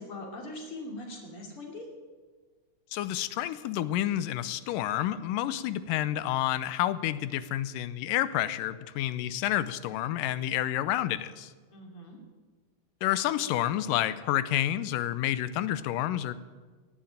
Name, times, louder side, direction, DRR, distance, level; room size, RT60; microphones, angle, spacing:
voice 1, 0.0-1.9 11.7-12.2, left 2 dB, 45° left, 1 dB, 3.5 m, -41 dB
voice 2, 2.9-11.5 13.0-16.3, left 12 dB, 90° left, 15 dB, 2.3 m, -29 dB
17.0 x 8.8 x 8.9 m, 1.4 s
omnidirectional pair, 3.8 m